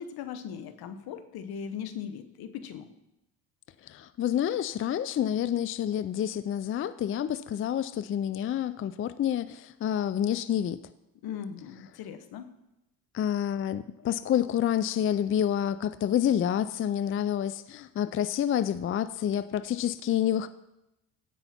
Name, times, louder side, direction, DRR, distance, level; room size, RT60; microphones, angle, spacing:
voice 1, 0.0-2.9 11.2-12.5, left 7 dB, 70° left, 10 dB, 1.1 m, -39 dB
voice 2, 3.9-10.8 13.1-20.5, left 10 dB, 35° left, 13 dB, 0.4 m, -28 dB
16.0 x 5.6 x 4.3 m, 0.90 s
cardioid pair, 85°, 39 cm